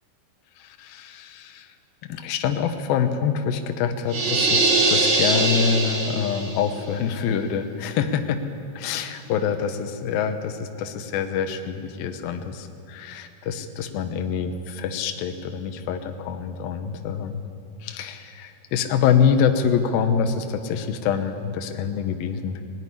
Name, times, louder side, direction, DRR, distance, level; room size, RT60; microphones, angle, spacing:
voice 1, 0.6-1.7 2.0-8.4 8.8-17.4 17.8-22.6, left 7 dB, 75° left, 7 dB, 2.7 m, -25 dB
sound 1, 4.1-6.7, right 3 dB, 40° right, 1.8 m, -21 dB
21.0 x 13.5 x 9.9 m, 2.6 s
omnidirectional pair, 4.3 m